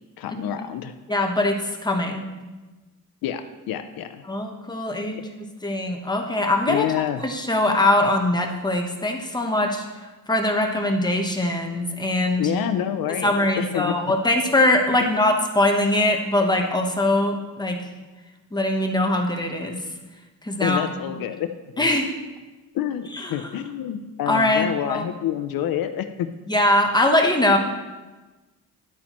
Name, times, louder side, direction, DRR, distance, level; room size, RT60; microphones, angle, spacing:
voice 1, 0.2-0.9 3.2-4.2 6.7-7.2 12.4-14.1 15.0-15.1 20.6-21.5 21.8-21.9 22.7-26.3, left 10 dB, 85° left, 9 dB, 0.6 m, -27 dB
voice 2, 1.1-2.3 4.3-5.3 5.6-6.9 7.2-9.8 10.3-12.4 13.2-17.8 18.5-19.7 20.4-20.8 21.1-21.2 21.8-22.1 23.1-23.5 24.3-25.0 26.5-27.6, left 1 dB, 10° left, 2 dB, 0.9 m, -22 dB
11.0 x 8.4 x 3.0 m, 1.2 s
wide cardioid pair, 140°, 34 cm